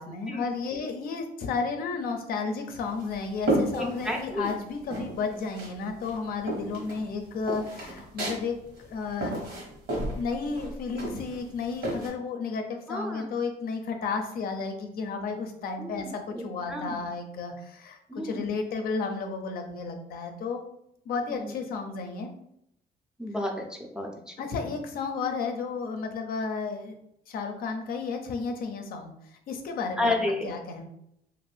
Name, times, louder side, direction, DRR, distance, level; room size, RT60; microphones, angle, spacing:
voice 1, 0.0-9.4 10.1-18.0 18.2-20.6 21.1-22.3 24.4-26.9 27.3-30.1 30.4-30.9, left 4 dB, 60° left, 4 dB, 0.5 m, -32 dB
sound 1, 2.7-4.6 4.9-5.8 6.0-12.1, right 1 dB, 70° right, 1.3 m, -32 dB
voice 2, 3.8-4.5 6.7-6.8 12.9-13.3 15.8-17.0 18.1-18.5 21.3-21.5 23.2-24.3 30.0-30.5, left 2 dB, 5° right, 0 dB, 0.5 m, -32 dB
2.5 x 2.5 x 3.3 m, 0.78 s
cardioid pair, 110°, 17 cm